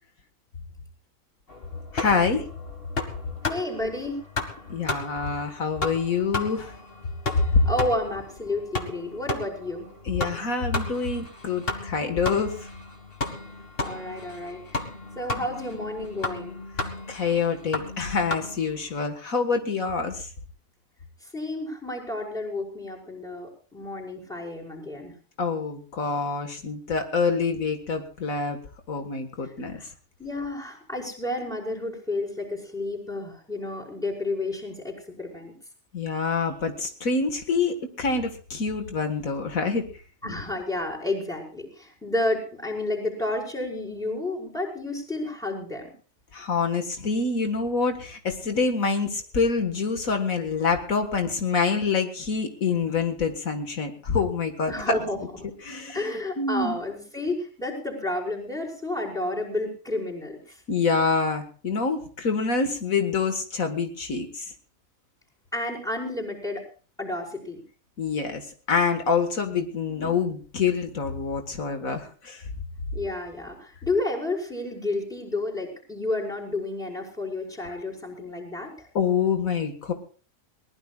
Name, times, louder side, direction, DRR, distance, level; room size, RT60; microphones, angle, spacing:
sound 1, 1.5-18.9, left 2 dB, 45° left, 2.1 m, -34 dB
voice 1, 1.9-2.5 4.7-6.8 7.4-7.6 10.0-12.7 17.1-20.3 25.4-28.6 28.9-29.9 35.9-39.8 40.2-40.4 46.3-55.0 55.6-56.8 60.7-64.5 68.0-72.4 78.9-79.9, left 5 dB, 75° left, 6 dB, 2.0 m, -26 dB
voice 2, 3.4-4.2 7.7-9.9 13.8-14.8 15.2-16.6 21.3-25.1 29.4-29.5 30.2-35.5 40.2-45.9 54.7-55.2 55.4-55.5 55.9-60.4 65.5-66.6 67.0-67.6 72.9-78.9, left 2 dB, ahead, 0 dB, 5.2 m, -31 dB
22.0 x 19.5 x 2.4 m, 0.40 s
omnidirectional pair, 1.4 m